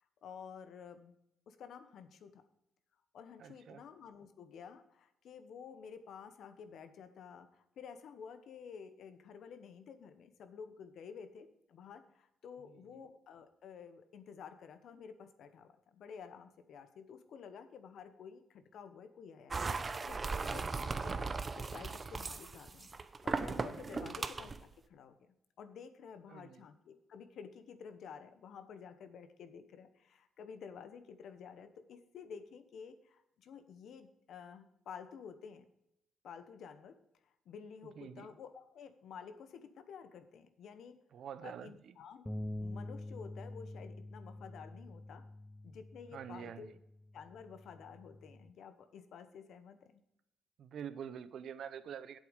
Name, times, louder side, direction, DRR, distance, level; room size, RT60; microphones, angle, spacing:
voice 1, 0.2-1.2 1.5-2.4 3.1-19.6 20.1-22.9 23.2-35.7 36.2-37.0 37.2-41.0 41.4-42.3 42.6-45.2 45.6-46.7 47.1-50.0, left 6 dB, 70° left, 10 dB, 1.0 m, -51 dB
voice 2, 3.4-3.8 12.9-13.0 23.9-24.2 26.3-26.6 38.0-38.3 41.1-41.9 46.1-46.8 50.6-52.2, right 8 dB, 65° right, 14 dB, 0.7 m, -46 dB
sound 1, 19.5-24.6, right 4 dB, 30° right, 0.7 m, -38 dB
sound 2, 42.3-48.5, left 1 dB, 10° left, 0.5 m, -46 dB
8.4 x 7.7 x 5.2 m, 0.83 s
cardioid pair, 90°, 0 cm